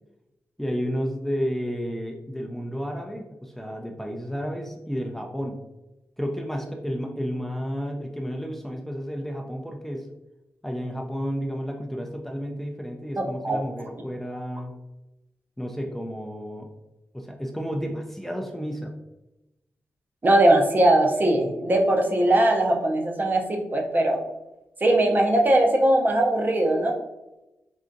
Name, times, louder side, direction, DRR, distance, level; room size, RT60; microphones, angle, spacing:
voice 1, 0.6-5.6 6.2-10.1 10.6-14.7 15.6-16.7 17.1-18.9, equal, 5° left, 1 dB, 0.4 m, -31 dB
voice 2, 13.2-13.6 20.2-24.2 24.8-26.9, right 1 dB, 40° right, 2 dB, 0.6 m, -20 dB
3.7 x 2.4 x 2.6 m, 0.97 s
cardioid pair, 70°, 5 cm